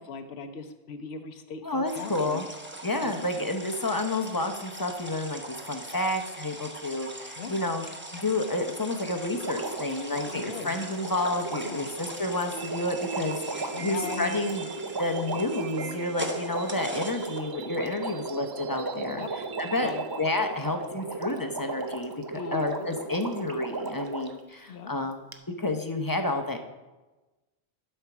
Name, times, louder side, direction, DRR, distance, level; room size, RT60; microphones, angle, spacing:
voice 1, 0.0-2.4 3.0-3.3 7.4-7.5 10.3-10.8 11.6-11.9 13.7-14.4 15.2-15.4 19.2-19.3 19.8-20.1 22.3-22.9 24.7-24.9, left 5 dB, 80° left, 7 dB, 1.0 m, -38 dB
voice 2, 1.6-2.4 2.8-7.8 8.1-14.7 15.0-19.2 19.6-19.9 20.2-22.1 22.5-25.2 25.6-26.6, left 2 dB, 25° left, 5 dB, 0.6 m, -30 dB
sound 1, 1.9-17.4, right 1 dB, 10° right, 0.9 m, -41 dB
Water, 9.4-24.4 25.3-25.4, right 3 dB, 30° right, 0.5 m, -36 dB
sound 2, 12.5-20.5, right 8 dB, 65° right, 0.8 m, -42 dB
11.5 x 4.4 x 5.9 m, 1.1 s
omnidirectional pair, 1.1 m